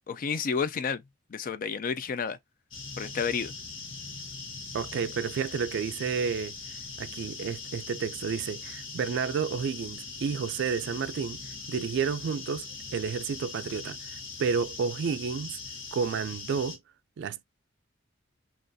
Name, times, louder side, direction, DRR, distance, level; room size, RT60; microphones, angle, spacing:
voice 1, 0.1-1.0 1.3-2.4 3.0-3.5, left 6 dB, 45° left, 0.4 m, -30 dB
sound 1, 2.7-16.8, left 4 dB, 70° left, 1.1 m, -41 dB
voice 2, 4.7-11.4 11.7-12.7 12.9-15.6 15.9-16.8 17.2-17.4, right 6 dB, 60° right, 0.3 m, -31 dB
3.9 x 2.5 x 2.5 m
head